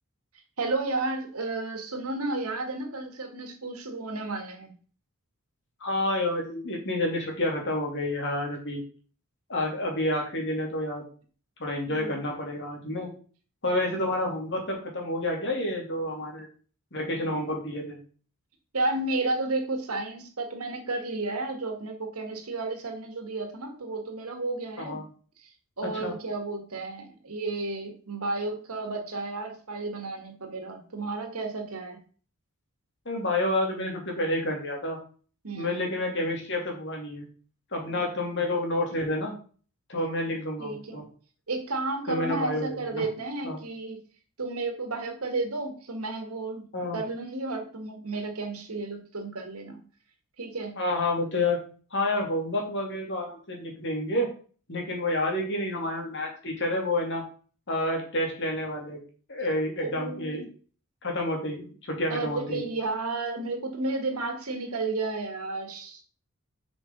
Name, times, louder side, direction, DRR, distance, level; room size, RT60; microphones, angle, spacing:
voice 1, 0.6-4.7 11.9-12.2 18.7-25.0 25.8-32.0 35.4-35.8 40.6-41.0 41.5-44.0 44.4-46.7 46.9-49.8 50.4-50.8 59.8-60.5 62.1-66.0, right 3 dB, 80° right, 5 dB, 2.0 m, -32 dB
voice 2, 5.8-8.8 9.5-11.0 11.6-13.1 13.6-16.5 16.9-18.0 24.8-25.0 25.9-26.1 33.0-35.0 35.5-37.3 37.7-39.3 39.9-41.0 42.1-43.1 43.4-43.6 46.7-47.0 50.8-51.6 51.9-54.3 54.7-57.2 57.7-59.0 59.3-60.4 61.0-62.6, left 1 dB, 55° left, 1 dB, 2.9 m, -29 dB
7.1 x 6.0 x 5.4 m, 0.41 s
head